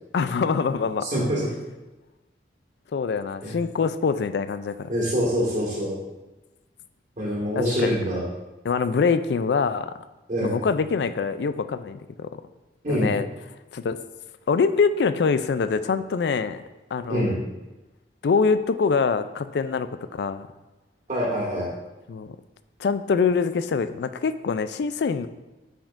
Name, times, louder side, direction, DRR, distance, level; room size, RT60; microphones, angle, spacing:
voice 1, 0.1-1.1 2.9-4.9 7.6-7.9 8.6-9.9 10.4-12.3 12.9-13.3 13.7-14.0 14.5-16.6 16.9-17.3 18.2-20.5 22.1-22.4 22.8-25.3, left 5 dB, 70° left, 12 dB, 0.3 m, -24 dB
voice 2, 1.0-1.5 3.4-3.6 4.9-6.0 7.2-8.3 10.3-10.6 12.8-13.1 17.1-17.4 21.1-21.7, equal, 45° right, -6 dB, 1.8 m, -25 dB
8.8 x 5.1 x 2.5 m, 1.1 s
head